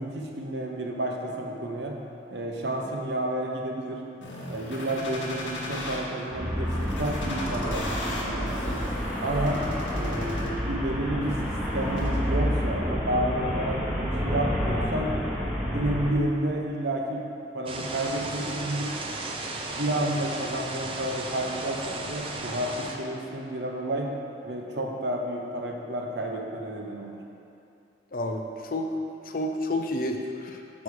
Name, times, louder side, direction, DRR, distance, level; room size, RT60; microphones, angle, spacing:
voice 1, 0.0-2.0 2.3-4.0 4.5-8.9 9.2-9.6 9.9-15.1 15.7-17.3 17.5-18.9 19.5-24.1 24.4-27.2, right 1 dB, 65° right, 1 dB, 0.9 m, -31 dB
sound 1, 4.2-6.0 6.7-10.7 11.2-12.2, left 1 dB, 90° left, 1.3 m, -37 dB
Traffic noise roadway noise, 6.3-16.1, equal, 5° right, 1.1 m, -29 dB
sound 2, 17.7-23.0, right 2 dB, 30° right, 0.6 m, -35 dB
voice 2, 28.1-28.4 28.7-28.9 29.3-30.8, left 1 dB, 50° left, 3 dB, 0.6 m, -30 dB
7.1 x 6.2 x 4.8 m, 2.6 s
head